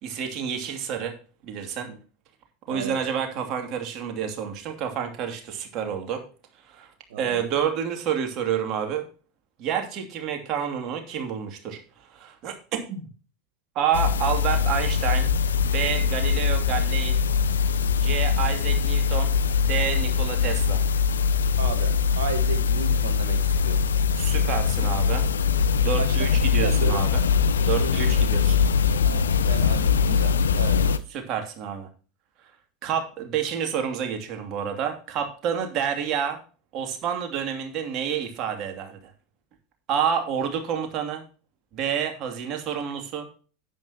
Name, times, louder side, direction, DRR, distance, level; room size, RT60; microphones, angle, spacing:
voice 1, 0.0-1.1 1.4-1.9 2.7-6.2 6.7-6.9 7.2-9.0 9.6-11.8 12.1-13.1 13.7-15.3 15.6-17.2 18.0-20.8 24.2-25.3 25.8-27.2 27.7-28.6 31.3-31.9 32.8-36.4 36.7-39.0 39.9-41.2 41.7-43.3, right 8 dB, 45° right, 4 dB, 2.7 m, -29 dB
voice 2, 7.1-7.5 21.6-23.9 26.0-27.4 27.8-28.0 29.0-30.9, right 6 dB, 70° right, 9 dB, 1.4 m, -34 dB
sound 1, 13.9-31.0, left 6 dB, 75° left, 0.6 m, -22 dB
10.5 x 9.2 x 3.0 m, 0.38 s
figure-of-eight pair, 80°, 0 cm